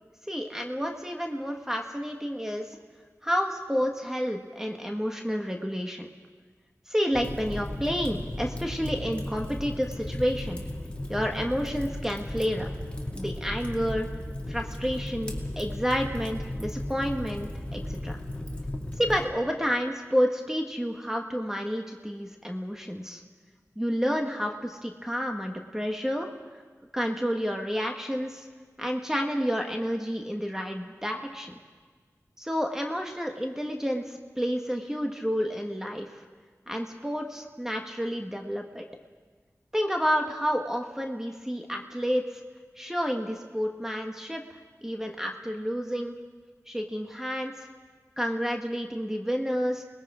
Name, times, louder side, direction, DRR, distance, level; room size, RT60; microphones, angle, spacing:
voice 1, 0.3-2.8 3.2-6.1 6.9-10.6 11.1-12.7 13.1-14.1 14.5-18.2 19.0-23.2 23.8-26.6 26.9-28.5 28.8-31.6 32.4-36.2 36.7-38.8 39.7-42.4 42.8-46.1 46.7-47.7 48.2-49.8, equal, 10° right, 2 dB, 1.5 m, -30 dB
Fire, 7.1-19.2, left 1 dB, 20° left, 2.4 m, -35 dB
28.5 x 20.0 x 5.0 m, 1.5 s
wide cardioid pair, 70°, 6 cm